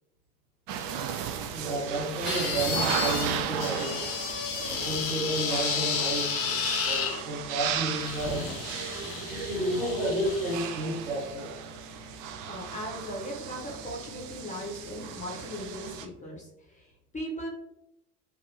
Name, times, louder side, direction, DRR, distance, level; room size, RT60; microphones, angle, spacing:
sound 1, 0.7-16.1, right 8 dB, 45° right, 0.4 m, -35 dB
voice 1, 1.5-4.0 4.8-8.6 9.3-11.5, right 1 dB, 75° right, -4 dB, 1.4 m, -31 dB
sound 2, 2.2-3.3 3.6-7.2 7.9-10.6, left 6 dB, 35° left, 0.5 m, -32 dB
voice 2, 12.4-17.5, equal, 15° left, -2 dB, 0.9 m, -38 dB
3.0 x 2.6 x 2.8 m, 0.84 s
figure-of-eight pair, 70°, 44 cm